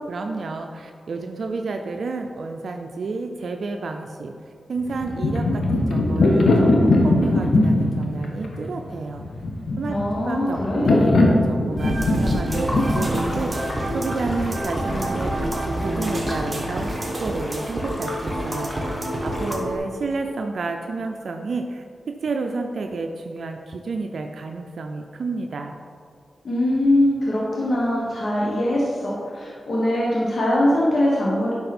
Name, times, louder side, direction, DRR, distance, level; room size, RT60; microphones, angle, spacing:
voice 1, 0.1-9.2 9.8-10.0 10.2-18.9 19.2-25.7, right 3 dB, 75° right, 4 dB, 0.5 m, -30 dB
sound 1, 4.9-14.6, left 2 dB, 75° left, 1.2 m, -20 dB
voice 2, 9.9-10.9 26.4-31.5, left 1 dB, 60° left, -5 dB, 1.5 m, -22 dB
sound 2, 11.8-19.8, right 1 dB, 30° right, 1.9 m, -27 dB
sound 3, 12.4-19.6, equal, 25° left, 1.9 m, -34 dB
9.5 x 6.0 x 4.3 m, 2.2 s
cardioid pair, 65°, 0 cm